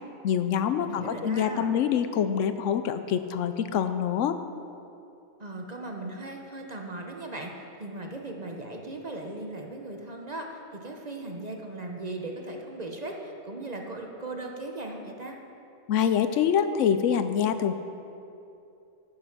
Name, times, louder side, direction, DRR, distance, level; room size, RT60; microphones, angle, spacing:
voice 1, 0.2-4.4 15.9-17.7, left 8 dB, 75° left, 10 dB, 0.9 m, -25 dB
voice 2, 0.8-1.7 5.4-7.5 7.8-15.4, right 2 dB, 35° right, 2 dB, 0.9 m, -38 dB
9.9 x 9.2 x 5.9 m, 2.7 s
omnidirectional pair, 1.4 m